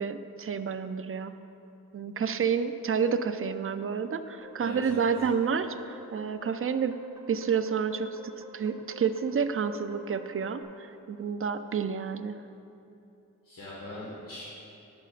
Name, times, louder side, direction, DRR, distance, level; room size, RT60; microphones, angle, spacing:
voice 1, 0.0-1.3 1.9-7.0 7.3-12.3, right 6 dB, 45° right, 10 dB, 0.4 m, -29 dB
sound 1, 4.4-10.6, equal, 10° right, 0.9 m, -51 dB
voice 2, 4.6-5.1 13.4-14.4, left 1 dB, 80° left, -8 dB, 1.7 m, -41 dB
12.0 x 7.5 x 2.5 m, 2.9 s
wide cardioid pair, 80°, 32 cm